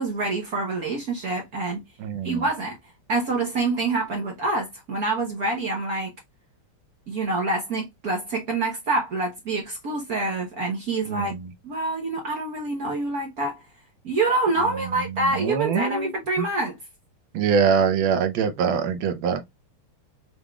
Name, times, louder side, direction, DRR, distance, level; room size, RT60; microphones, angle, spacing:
voice 1, 0.0-1.8 2.2-2.8 3.1-6.1 7.1-11.3 11.6-13.6 14.0-16.8, right 3 dB, 55° right, 1.2 m, -26 dB
voice 2, 2.0-2.4 11.1-11.4 15.1-16.1 16.4-16.5 17.3-19.4, right 6 dB, 70° right, 1.3 m, -24 dB
6.1 x 3.5 x 2.2 m
omnidirectional pair, 2.4 m